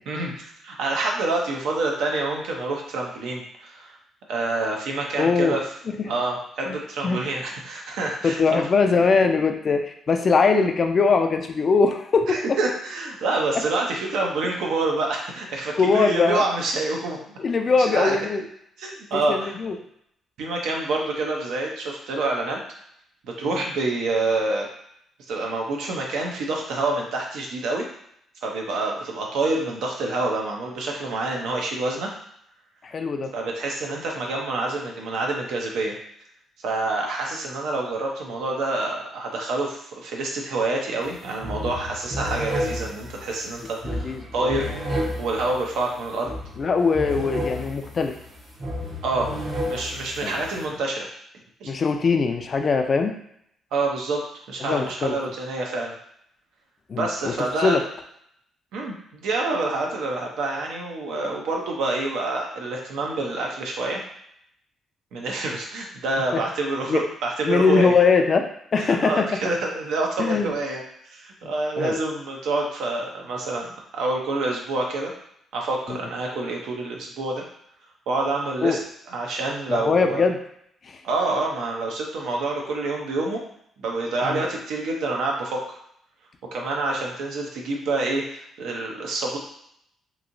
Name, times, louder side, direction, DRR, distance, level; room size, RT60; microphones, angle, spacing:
voice 1, 0.1-4.0 4.3-5.6 6.0-8.6 12.3-17.2 17.8-18.2 18.8-19.5 20.4-22.6 23.2-24.7 25.3-27.9 28.4-32.1 33.3-35.9 36.6-44.7 45.1-46.3 49.0-49.3 49.6-51.1 51.6-51.7 53.7-54.2 54.5-55.9 56.9-57.8 58.7-64.0 65.1-67.9 68.8-70.8 71.1-75.1 75.5-77.4 78.1-78.8 79.1-80.2 81.0-83.4 83.8-85.6 86.5-89.4, right 2 dB, 80° right, 0 dB, 0.6 m, -27 dB
voice 2, 5.2-5.6 6.0-6.1 6.7-6.8 7.0-7.2 8.2-12.6 15.8-16.4 17.4-18.4 19.1-19.8 32.8-33.3 43.8-44.5 46.6-48.1 50.2-50.4 51.7-53.2 54.6-55.2 56.9-57.3 57.6-57.8 66.3-66.4 66.9-67.0 67.4-68.5 68.7-69.4 70.2-70.5 71.8-72.0 75.9-76.0 78.6-78.8 79.7-80.4 80.8-81.0 84.2-84.4, left 4 dB, 45° left, 6 dB, 0.4 m, -21 dB
sound 1, 41.0-41.1 41.4-50.6, equal, 50° right, 0.9 m, -32 dB
3.0 x 2.7 x 2.6 m, 0.72 s
cardioid pair, 90°, 0 cm